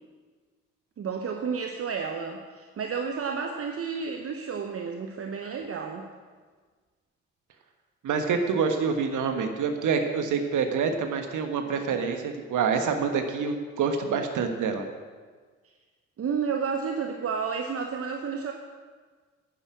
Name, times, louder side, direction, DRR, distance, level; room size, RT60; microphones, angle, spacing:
voice 1, 1.0-6.1 16.2-18.5, right 6 dB, 35° right, 4 dB, 1.0 m, -31 dB
voice 2, 8.0-14.9, right 5 dB, 55° right, 6 dB, 1.5 m, -27 dB
10.0 x 10.0 x 6.2 m, 1.5 s
figure-of-eight pair, 45°, 38 cm